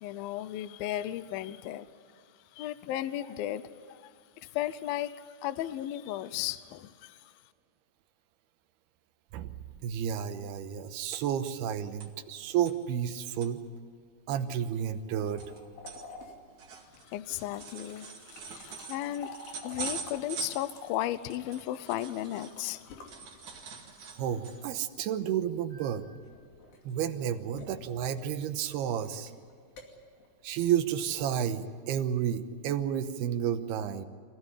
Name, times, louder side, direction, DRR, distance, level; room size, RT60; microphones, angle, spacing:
voice 1, 0.0-2.2 2.5-7.3 17.0-23.9, left 13 dB, 80° left, 14 dB, 2.2 m, -36 dB
voice 2, 9.8-13.6 14.3-15.5 24.1-26.1 26.8-29.3 30.4-34.1, right 9 dB, 75° right, 8 dB, 2.9 m, -31 dB
sound 1, 11.4-12.3 12.7-12.8 13.2-13.5 14.0-14.1 14.3-22.8 23.1-24.8 25.2-25.4 25.7-26.0 27.0-27.6 28.0-28.5 28.7-28.8 29.4-29.5, right 5 dB, 50° right, 3.3 m, -44 dB
sound 2, 15.3-23.9 25.7-31.4, left 3 dB, 60° left, 4.3 m, -50 dB
26.0 x 16.5 x 9.9 m, 2.1 s
omnidirectional pair, 5.0 m